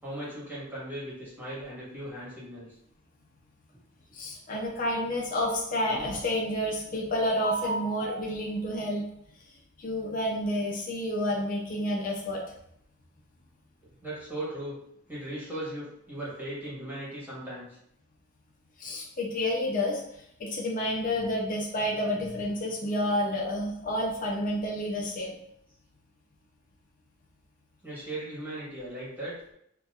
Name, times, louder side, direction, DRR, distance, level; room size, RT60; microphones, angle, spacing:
voice 1, 0.0-2.7 14.0-14.8 15.1-17.7 27.8-29.3, right 1 dB, 10° right, -8 dB, 1.3 m, -38 dB
voice 2, 4.1-9.0 9.8-12.4 18.8-25.4, left 1 dB, 40° left, -2 dB, 0.5 m, -29 dB
4.1 x 2.2 x 2.4 m, 0.72 s
head